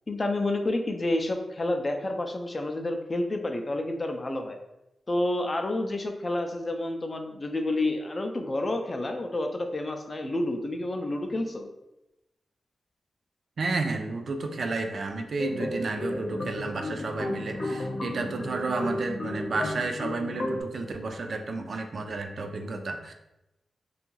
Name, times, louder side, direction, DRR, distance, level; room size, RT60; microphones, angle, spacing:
voice 1, 0.1-4.6 5.1-11.7, left 1 dB, 30° left, 5 dB, 0.3 m, -29 dB
voice 2, 13.6-23.1, right 3 dB, 60° right, 5 dB, 0.3 m, -31 dB
sound 1, 15.4-20.6, left 1 dB, 50° left, 0.7 m, -33 dB
2.5 x 2.3 x 3.0 m, 0.91 s
wide cardioid pair, 110°, 0 cm